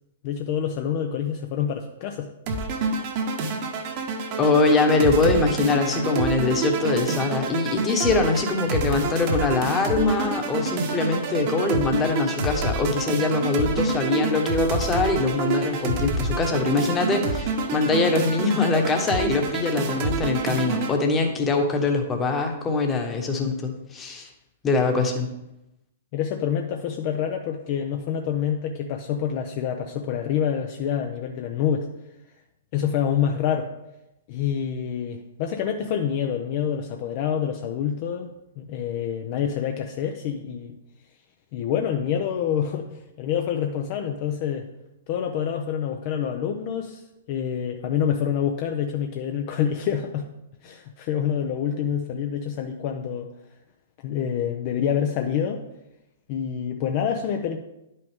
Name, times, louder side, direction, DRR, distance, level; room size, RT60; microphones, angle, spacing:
voice 1, 0.2-2.3 26.1-31.9 32.7-33.7 34.3-40.8 41.5-44.7 45.1-47.0 47.3-50.3 50.6-53.3 54.0-55.6 56.3-57.6, left 8 dB, 45° left, 4 dB, 0.7 m, -27 dB
sound 1, 2.5-20.9, right 4 dB, 45° right, 1.2 m, -28 dB
voice 2, 4.4-24.3 24.6-25.3, left 3 dB, 20° left, 4 dB, 1.3 m, -23 dB
10.5 x 5.6 x 3.6 m, 0.89 s
figure-of-eight pair, 115°, 0 cm